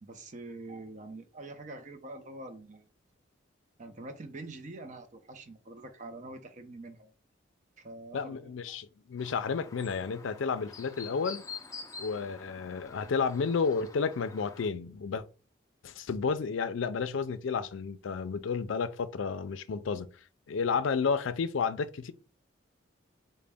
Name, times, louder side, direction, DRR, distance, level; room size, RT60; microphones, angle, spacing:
voice 1, 0.0-2.9 3.8-7.1 7.8-8.8, right 2 dB, 35° right, 0.5 m, -45 dB
voice 2, 8.1-11.4 12.0-15.2 15.8-20.1 20.5-22.1, left 5 dB, 80° left, 0.4 m, -31 dB
Chirp tweet, 9.2-14.7, left 5 dB, 15° left, 0.4 m, -47 dB
3.9 x 2.1 x 3.4 m
head